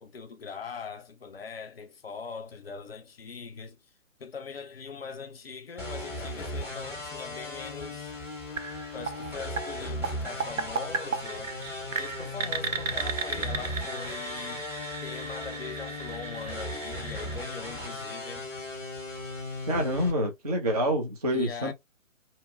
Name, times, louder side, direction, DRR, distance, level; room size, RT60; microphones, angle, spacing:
voice 1, 0.0-3.8 4.2-8.2 8.9-11.5 12.0-14.7 15.0-18.5 21.3-21.7, left 5 dB, 50° left, 0.5 m, -41 dB
sound 1, 5.8-20.1, left 2 dB, 5° right, 0.8 m, -37 dB
sound 2, 8.6-18.4, right 5 dB, 70° right, 0.6 m, -36 dB
voice 2, 19.7-21.7, equal, 30° right, 0.4 m, -27 dB
2.7 x 2.2 x 2.5 m
figure-of-eight pair, 135°, 40 cm